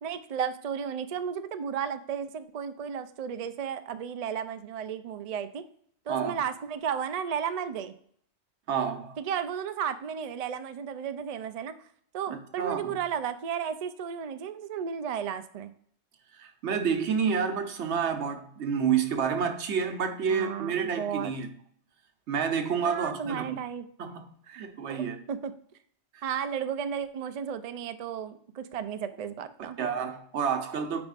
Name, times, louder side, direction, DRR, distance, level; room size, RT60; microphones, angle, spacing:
voice 1, 0.0-5.6 6.1-7.9 9.2-11.8 12.1-15.7 20.3-21.3 22.8-23.9 24.9-25.5 26.2-29.8, right 8 dB, 55° right, 0.4 m, -33 dB
voice 2, 8.7-9.2 12.3-12.9 16.4-21.5 22.3-23.6 24.0-25.2 26.1-26.2 29.8-31.0, right 7 dB, 80° right, 1.1 m, -29 dB
8.7 x 4.9 x 2.4 m
omnidirectional pair, 1.2 m